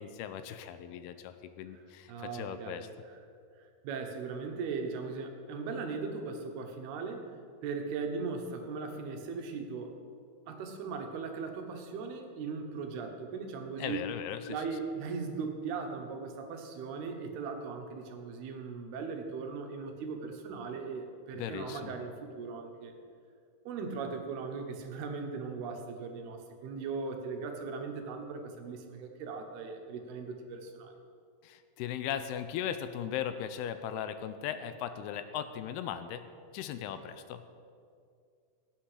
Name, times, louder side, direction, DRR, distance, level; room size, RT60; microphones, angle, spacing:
voice 1, 0.0-2.9 13.8-14.6 21.3-22.0 31.4-36.2 36.5-37.4, left 9 dB, 85° left, 10 dB, 2.5 m, -38 dB
voice 2, 2.1-2.8 3.6-7.4 7.6-10.0 10.5-14.1 14.5-22.9 23.6-30.9, right 4 dB, 75° right, 4 dB, 3.0 m, -38 dB
17.0 x 8.9 x 4.9 m, 2.3 s
omnidirectional pair, 4.7 m